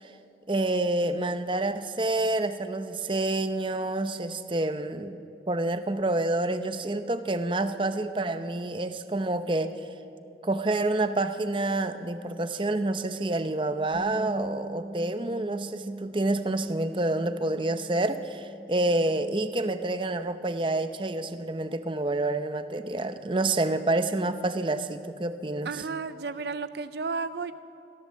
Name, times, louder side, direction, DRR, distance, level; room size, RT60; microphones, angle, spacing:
voice 1, 0.5-9.7 10.4-25.7, right 2 dB, 30° right, 10 dB, 0.7 m, -28 dB
Bass guitar, 13.9-20.2, right 1 dB, 35° left, 2.3 m, -42 dB
voice 2, 25.6-27.5, right 4 dB, 65° right, 12 dB, 0.5 m, -33 dB
22.5 x 16.0 x 7.5 m, 2.6 s
head